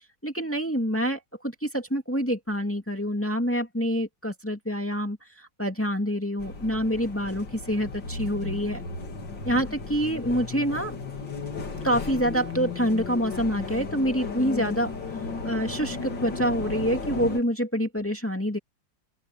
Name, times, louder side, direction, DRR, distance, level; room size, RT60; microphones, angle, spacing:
voice 1, 0.2-8.8 9.4-11.0 11.8-14.9 15.4-18.6, equal, 5° left, 2.1 m, -27 dB
sound 1, 6.4-17.4, left 4 dB, 75° left, 3.6 m, -35 dB
open air
omnidirectional pair, 2.0 m